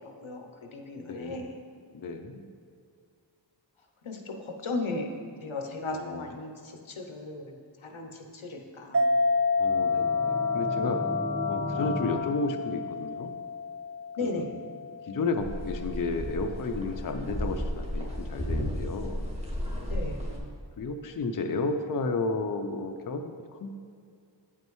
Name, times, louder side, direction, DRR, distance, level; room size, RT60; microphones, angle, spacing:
voice 1, 0.2-1.5 4.0-4.3 4.6-5.1 5.4-6.5 6.9-7.5 7.8-9.0 14.2-14.5 19.9-20.3, left 3 dB, 85° left, 3 dB, 0.8 m, -35 dB
voice 2, 1.0-1.5 1.9-2.4 5.9-6.3 9.6-11.0 11.5-13.3 14.2-14.5 15.0-19.2 20.8-23.7, left 3 dB, 45° left, 5 dB, 0.5 m, -32 dB
sound 1, 8.9-16.0, left 4 dB, 35° right, 0.4 m, -29 dB
sound 2, 9.6-12.2, equal, 5° left, 1.0 m, -35 dB
sound 3, 15.4-20.4, equal, 15° right, 1.3 m, -33 dB
8.3 x 5.3 x 3.1 m, 2.2 s
wide cardioid pair, 40°, 47 cm